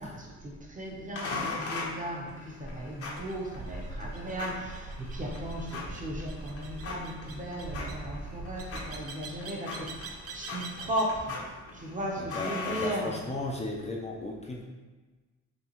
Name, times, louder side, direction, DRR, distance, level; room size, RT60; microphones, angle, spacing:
voice 1, 0.0-11.4 11.7-13.1, equal, 25° right, -1 dB, 0.9 m, -36 dB
sound 1, 1.2-13.6, left 3 dB, 50° left, 0.9 m, -41 dB
sound 2, 3.2-11.2, right 3 dB, 50° right, 0.6 m, -42 dB
voice 2, 12.2-14.6, left 2 dB, 20° left, -1 dB, 0.5 m, -36 dB
5.4 x 2.4 x 3.0 m, 1.2 s
cardioid pair, 90°, 30 cm